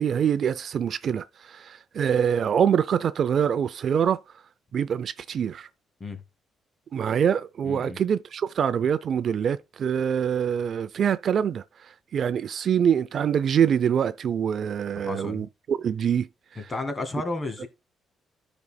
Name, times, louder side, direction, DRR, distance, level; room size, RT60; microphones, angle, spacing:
voice 1, 0.0-4.2 4.7-5.7 6.9-11.6 12.1-16.3, right 8 dB, 60° right, 0.4 m, -24 dB
voice 2, 7.6-8.0 15.0-15.4 16.6-17.7, left 2 dB, 30° left, 1.8 m, -32 dB
14.0 x 5.3 x 2.2 m
cardioid pair, 90°, 0 cm